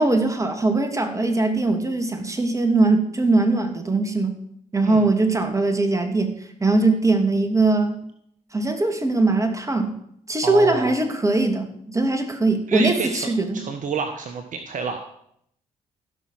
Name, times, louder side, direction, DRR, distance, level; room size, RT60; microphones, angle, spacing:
voice 1, 0.0-4.4 4.7-8.0 8.5-9.9 10.3-13.6, right 2 dB, 20° right, 6 dB, 2.5 m, -21 dB
voice 2, 10.4-10.9 12.7-15.0, right 5 dB, 50° right, 6 dB, 1.3 m, -29 dB
15.5 x 6.0 x 6.3 m, 0.71 s
figure-of-eight pair, 45°, 17 cm